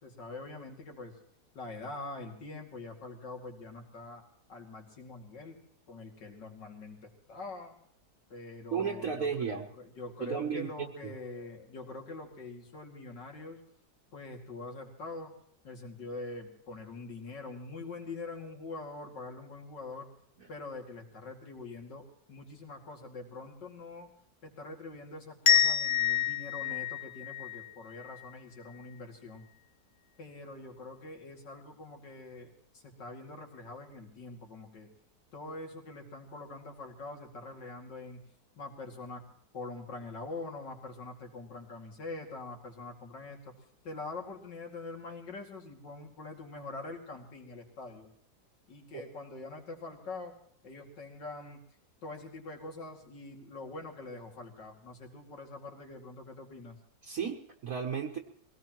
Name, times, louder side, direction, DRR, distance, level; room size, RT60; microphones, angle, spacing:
voice 1, 0.0-1.2 1.5-4.2 4.5-5.6 5.9-7.7 8.3-13.6 14.1-15.3 15.6-20.1 20.5-24.1 24.4-29.4 30.2-34.9 35.3-38.3 38.6-39.2 39.5-43.6 43.8-48.1 48.7-50.3 50.6-51.6 52.0-56.8, left 3 dB, 70° left, 1 dB, 3.1 m, -44 dB
voice 2, 8.7-9.7 10.2-10.7 48.9-49.0 57.0-58.2, right 6 dB, 55° right, 2 dB, 1.4 m, -33 dB
sound 1, 25.5-28.2, left 9 dB, 45° left, 0.9 m, -28 dB
23.5 x 17.5 x 3.0 m, 0.67 s
omnidirectional pair, 2.0 m